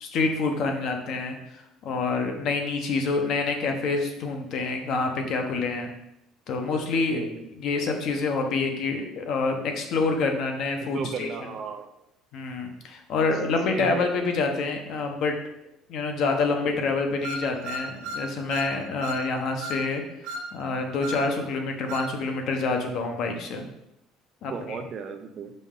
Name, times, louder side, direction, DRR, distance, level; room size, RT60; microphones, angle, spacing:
voice 1, 0.0-5.9 6.5-7.3 7.6-11.3 12.3-15.4 15.9-20.0 20.5-23.7 24.4-24.8, left 3 dB, 45° left, 4 dB, 0.9 m, -27 dB
voice 2, 10.8-11.9 13.7-14.1 24.5-25.5, right 6 dB, 35° right, 7 dB, 0.5 m, -35 dB
sound 1, 17.2-18.7 19.0-19.2 19.6-19.8 20.2-20.5 21.0-21.2 21.9-22.1, right 1 dB, 90° right, 0.8 m, -34 dB
5.3 x 5.3 x 3.7 m, 0.84 s
cardioid pair, 180°, 0 cm